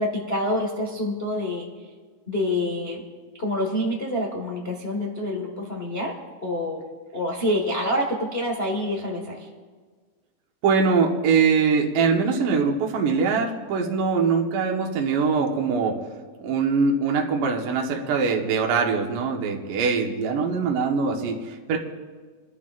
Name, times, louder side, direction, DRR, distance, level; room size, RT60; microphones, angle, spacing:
voice 1, 0.0-1.7 2.3-3.1 3.4-6.8 7.1-9.5, left 1 dB, 50° left, -1 dB, 0.7 m, -27 dB
voice 2, 10.6-16.0 16.4-21.8, right 5 dB, 70° right, 1 dB, 2.8 m, -22 dB
28.5 x 11.5 x 2.5 m, 1.5 s
omnidirectional pair, 4.1 m